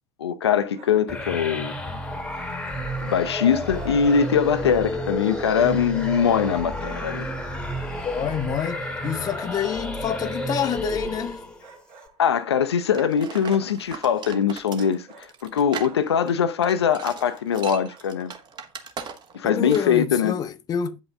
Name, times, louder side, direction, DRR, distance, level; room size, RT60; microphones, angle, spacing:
voice 1, 0.2-1.7 3.0-7.3 12.2-18.3 19.3-20.4, left 7 dB, 70° left, 0.5 m, -22 dB
sound 1, 0.7-1.5 2.6-3.4 3.7-4.1 5.6-6.3 8.2-9.3 11.6-12.7 14.8-15.4 15.8-16.2 16.6-17.6 17.8-18.2 19.8-20.5, right 5 dB, 45° right, 2.2 m, -51 dB
sound 2, 1.1-11.7, equal, 5° left, 1.2 m, -31 dB
voice 2, 8.0-11.5 19.4-21.0, left 8 dB, 25° left, 0.6 m, -27 dB
sound 3, 12.9-19.4 19.7-20.0, right 6 dB, 30° right, 1.2 m, -38 dB
8.6 x 5.5 x 3.5 m
figure-of-eight pair, 75°, 14 cm